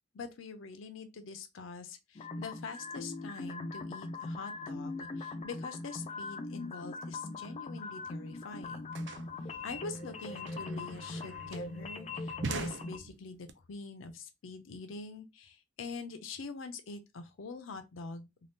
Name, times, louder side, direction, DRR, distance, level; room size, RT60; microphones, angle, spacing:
voice 1, 0.1-9.0 9.6-18.3, left 4 dB, 90° left, 0.5 m, -44 dB
sound 1, 2.1-13.0, left 3 dB, 30° left, 0.3 m, -41 dB
sound 2, 8.0-8.1 8.3-13.5, right 4 dB, 65° right, 0.4 m, -44 dB
2.6 x 2.3 x 3.4 m
head